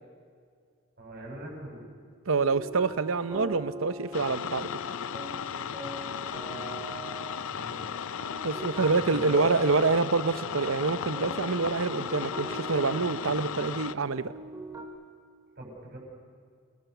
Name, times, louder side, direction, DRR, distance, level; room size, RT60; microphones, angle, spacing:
voice 1, 1.0-1.8 6.4-7.1 7.5-7.9 8.8-9.5 15.6-16.0, right 1 dB, 45° right, -1 dB, 7.4 m, -44 dB
voice 2, 2.3-4.7 8.4-14.3, right 4 dB, 70° right, 13 dB, 0.8 m, -26 dB
sound 1, 2.4-14.8, right 2 dB, 15° right, 2.3 m, -42 dB
sound 2, 4.1-13.9, left 7 dB, 70° left, 0.5 m, -36 dB
28.0 x 20.0 x 6.9 m, 2.2 s
head